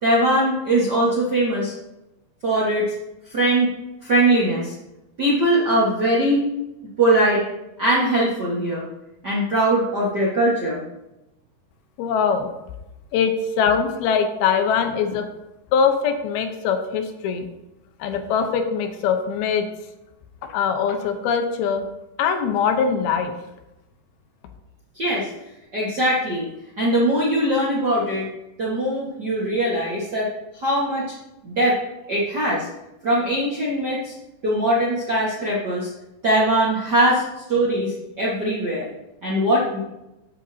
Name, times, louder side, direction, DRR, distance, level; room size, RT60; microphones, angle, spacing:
voice 1, 0.0-1.7 2.4-2.9 3.3-3.7 4.0-4.7 5.2-6.5 7.0-7.4 7.8-8.9 9.2-10.8 24.9-25.3 25.7-26.5 26.8-28.3 28.6-30.3 30.5-31.1 31.4-31.8 32.1-32.7 33.0-34.1 34.4-35.9 36.2-38.9 39.2-39.8, right 1 dB, 75° right, -6 dB, 0.9 m, -21 dB
voice 2, 12.0-12.5 13.1-15.3 15.7-17.5 18.0-19.7 20.4-21.8 22.2-23.3, left 6 dB, 75° left, 6 dB, 2.7 m, -22 dB
13.0 x 8.5 x 2.8 m, 0.94 s
omnidirectional pair, 4.8 m